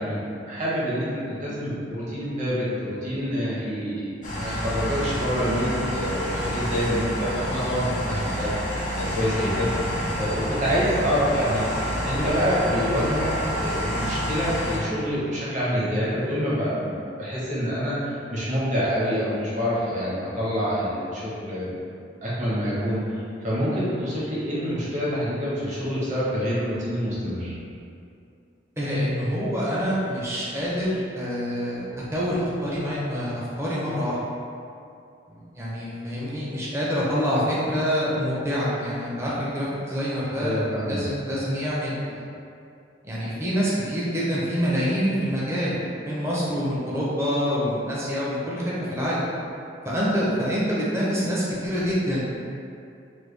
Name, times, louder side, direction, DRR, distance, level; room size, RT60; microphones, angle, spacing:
voice 1, 0.0-9.7 10.2-11.6 12.0-13.3 13.6-21.7 22.2-23.0 23.4-27.5 40.4-41.1, equal, 45° right, -8 dB, 0.9 m, -26 dB
sound 1, 4.2-14.8, equal, 45° left, 0.6 m, -28 dB
voice 2, 28.8-31.9 32.1-34.2 35.3-42.2 43.1-48.6 48.9-49.2 49.8-52.2, equal, 15° right, -8 dB, 0.5 m, -26 dB
3.2 x 2.2 x 3.2 m, 2.5 s
head